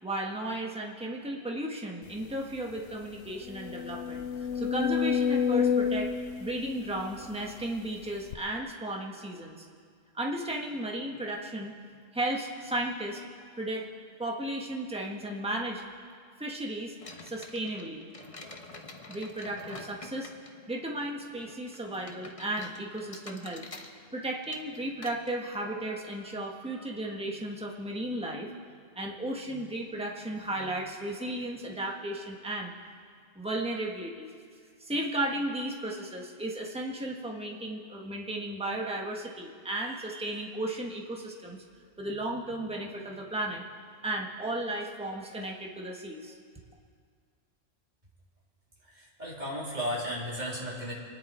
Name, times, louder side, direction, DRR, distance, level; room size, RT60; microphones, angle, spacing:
voice 1, 0.0-6.1 6.4-9.6 10.1-11.7 12.1-13.3 13.6-13.8 14.2-15.8 16.4-16.9 17.2-18.1 19.1-20.3 20.7-23.6 24.1-28.5 28.9-32.7 33.3-34.3 34.8-41.6 42.0-43.6 44.0-46.4, right 1 dB, 5° right, -1 dB, 1.4 m, -34 dB
sound 1, 2.3-2.4 2.8-2.9 3.4-7.6 8.3-8.4, left 7 dB, 85° left, 1.1 m, -29 dB
sound 2, 17.0-28.0, left 2 dB, 30° left, 1.0 m, -49 dB
voice 2, 48.8-50.9, equal, 35° right, -6 dB, 3.6 m, -34 dB
27.0 x 10.0 x 4.5 m, 2.1 s
omnidirectional pair, 1.3 m